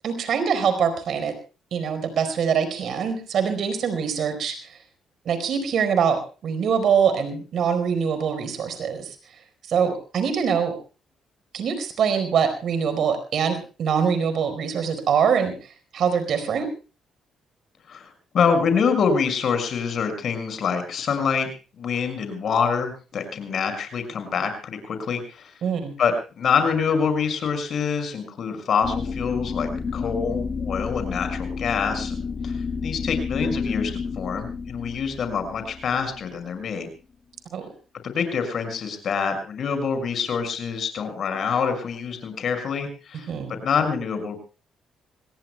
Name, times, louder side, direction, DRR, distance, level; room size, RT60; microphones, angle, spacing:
voice 1, 0.0-1.3 1.7-4.5 5.2-9.2 9.7-10.7 11.5-15.5 15.9-16.7 25.6-25.9 37.5-37.7 43.3-43.5, right 7 dB, 65° right, 9 dB, 4.5 m, -23 dB
voice 2, 17.9-21.5 21.8-25.5 26.0-32.2 32.4-32.6 32.8-36.9 38.0-44.4, left 6 dB, 60° left, 7 dB, 5.8 m, -26 dB
sound 1, 28.8-36.7, left 5 dB, 40° left, 4.8 m, -30 dB
26.5 x 18.5 x 2.3 m, 0.34 s
cardioid pair, 90°, 0 cm